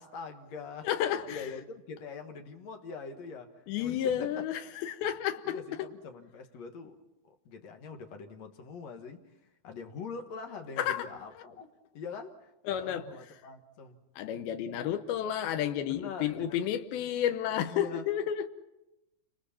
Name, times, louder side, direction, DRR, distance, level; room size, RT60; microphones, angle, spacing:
voice 1, 0.0-4.3 5.4-11.7 11.9-14.0 15.9-16.7 17.5-18.1, left 5 dB, 55° left, 2.4 m, -44 dB
voice 2, 0.8-1.5 3.7-5.6 10.8-11.0 12.7-13.0 14.2-18.5, left 10 dB, 85° left, 2.9 m, -31 dB
30.0 x 27.0 x 4.4 m
omnidirectional pair, 4.3 m